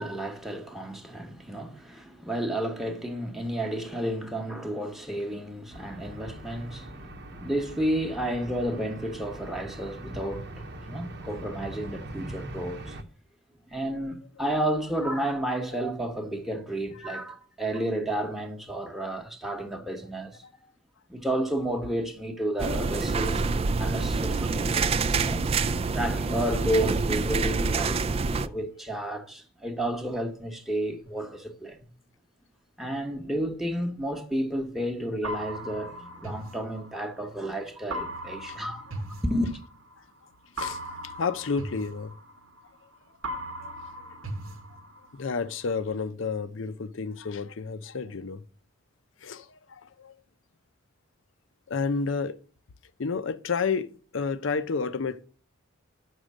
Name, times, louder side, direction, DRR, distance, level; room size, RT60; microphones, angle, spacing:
voice 1, 0.0-7.0 7.3-13.0 13.7-20.4 21.1-23.5 23.8-25.5 25.9-28.0 28.4-31.9 32.8-38.9 39.2-39.6, right 1 dB, ahead, 1.0 m, -31 dB
sound 1, 5.7-13.0, right 1 dB, 55° right, 0.9 m, -41 dB
sound 2, 22.6-28.5, right 4 dB, 30° right, 0.3 m, -26 dB
sound 3, 35.2-37.3 37.9-40.0 40.6-42.9 43.2-45.3, equal, 90° right, 1.2 m, -38 dB
voice 2, 40.6-42.1 43.6-43.7 45.1-48.4 49.2-50.1 51.7-52.4 53.0-53.9 54.1-55.2, left 5 dB, 65° left, 0.6 m, -31 dB
6.5 x 6.2 x 7.3 m
head